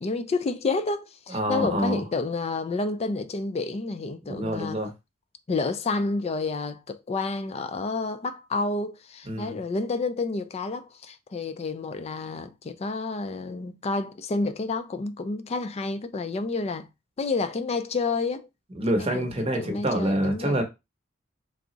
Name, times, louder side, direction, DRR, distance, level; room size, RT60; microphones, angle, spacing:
voice 1, 0.0-4.8 5.5-16.9 17.2-18.5 19.0-20.6, left 3 dB, 30° left, 0.3 m, -30 dB
voice 2, 1.3-2.0 4.3-4.9 9.3-9.6 18.7-20.6, right 1 dB, 30° right, 0.8 m, -26 dB
3.5 x 2.0 x 3.8 m
head